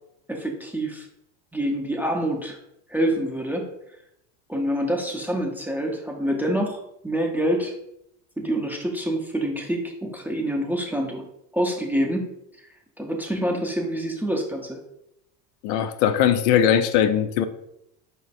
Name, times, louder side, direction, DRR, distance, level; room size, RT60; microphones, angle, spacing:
voice 1, 0.3-1.1 1.5-2.6 2.9-3.7 4.5-7.7 8.4-11.2 11.5-12.3 12.6-12.7 13.0-14.8, right 1 dB, 5° right, 1 dB, 0.4 m, -26 dB
voice 2, 15.6-17.4, left 9 dB, 80° left, 11 dB, 0.6 m, -20 dB
4.9 x 2.1 x 4.1 m, 0.80 s
supercardioid pair, 110°, 45 cm